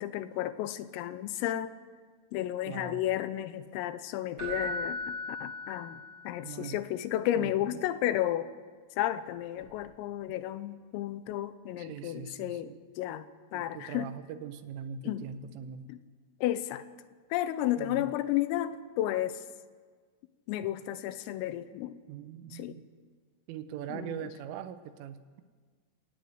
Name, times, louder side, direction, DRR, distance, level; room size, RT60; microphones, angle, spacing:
voice 1, 0.0-1.7 2.3-8.5 9.0-13.3 13.5-14.1 15.0-15.3 15.9-16.0 16.4-16.8 17.3-19.4 20.5-22.0 22.5-22.8 23.9-24.3, left 13 dB, 85° left, 13 dB, 3.5 m, -32 dB
voice 2, 2.7-3.0 6.4-6.8 7.3-7.8 11.8-12.8 13.5-15.9 17.8-18.1 22.1-22.8 23.5-25.2, right 8 dB, 80° right, 10 dB, 3.5 m, -42 dB
Keyboard (musical), 4.4-6.3 9.6-9.7, left 1 dB, 25° right, 6.0 m, -37 dB
26.5 x 18.5 x 7.9 m, 1.5 s
omnidirectional pair, 6.0 m